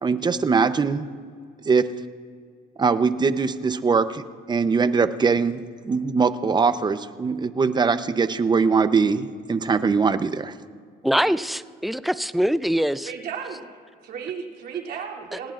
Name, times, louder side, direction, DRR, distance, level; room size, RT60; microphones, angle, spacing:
voice 1, 0.0-1.0 1.7-1.9 2.8-4.2 4.5-10.6, right 5 dB, 25° right, 11 dB, 0.8 m, -21 dB
voice 2, 11.0-13.1, equal, ahead, 13 dB, 0.4 m, -23 dB
voice 3, 13.0-13.7 14.0-15.5, right 7 dB, 65° right, -1 dB, 3.0 m, -34 dB
28.5 x 17.5 x 2.5 m, 2.1 s
cardioid pair, 110°, 17 cm